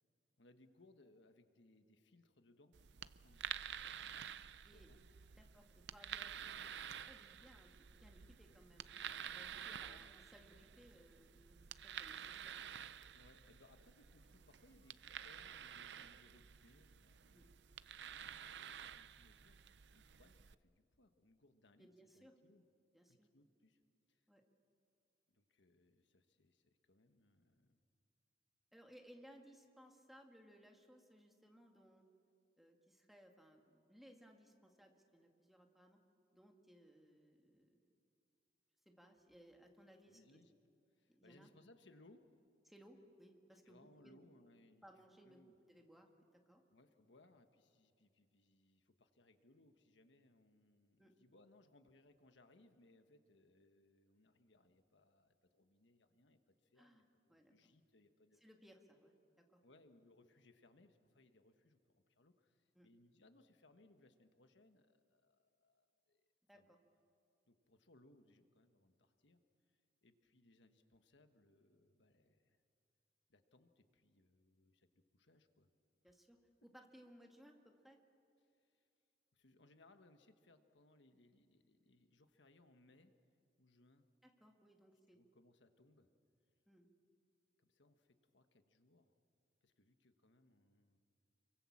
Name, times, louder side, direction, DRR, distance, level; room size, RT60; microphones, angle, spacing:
voice 1, 0.4-5.5 9.8-10.1 13.1-17.5 18.1-21.9 22.1-22.6 23.1-23.8 24.1-24.2 25.3-27.8 40.0-40.5 40.9-42.2 43.6-44.9 45.2-45.6 46.7-58.4 59.6-66.7 67.5-69.4 69.7-72.6 73.3-75.7 76.0-76.2 78.4-78.9 79.3-83.1 83.6-84.0 85.1-86.1 87.6-89.1 89.6-91.0, left 2 dB, 85° left, 7 dB, 1.4 m, -69 dB
sound 1, 2.7-20.5, right 9 dB, 70° right, 0.6 m, -50 dB
voice 2, 5.4-6.7 7.1-9.0 9.3-12.6 17.3-17.5 21.8-22.4 22.9-23.3 24.3-24.4 28.7-32.1 32.6-36.0 36.3-37.8 38.9-40.4 41.1-41.5 42.7-44.2 44.8-46.6 51.0-51.2 56.8-57.0 57.3-57.5 58.4-59.6 62.8-62.9 66.5-66.6 76.0-76.4 76.6-78.0 84.2-85.2 86.7-86.9, equal, ahead, 2 dB, 2.0 m, -63 dB
29.0 x 23.5 x 7.3 m, 2.5 s
head